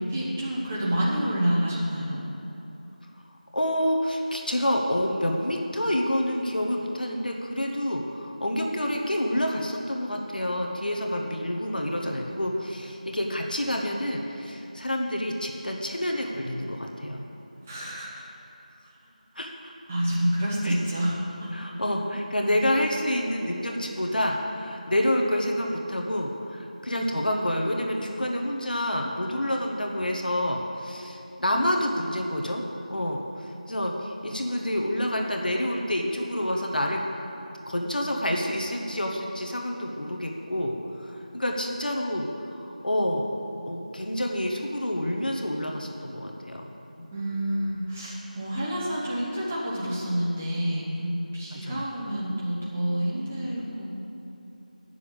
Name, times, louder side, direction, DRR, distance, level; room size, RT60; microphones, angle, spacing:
voice 1, 0.1-2.2 17.6-18.2 19.0-19.1 19.9-21.5 47.0-53.9, equal, 10° right, -7 dB, 0.9 m, -28 dB
voice 2, 3.5-17.2 19.3-19.7 20.6-20.8 21.5-32.6 32.9-37.0 37.7-43.3 43.7-46.6 51.5-51.8, left 1 dB, 80° left, 1 dB, 1.4 m, -28 dB
9.7 x 6.9 x 7.2 m, 2.9 s
figure-of-eight pair, 175°, 5 cm